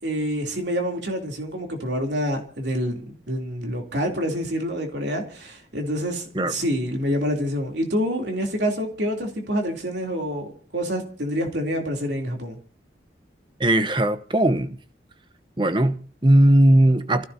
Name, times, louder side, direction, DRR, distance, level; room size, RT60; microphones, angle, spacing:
voice 1, 0.0-12.6, equal, 75° right, 3.2 m, -27 dB
voice 2, 13.6-14.8 15.6-17.2, right 1 dB, 25° right, 0.9 m, -18 dB
29.5 x 15.0 x 2.8 m
head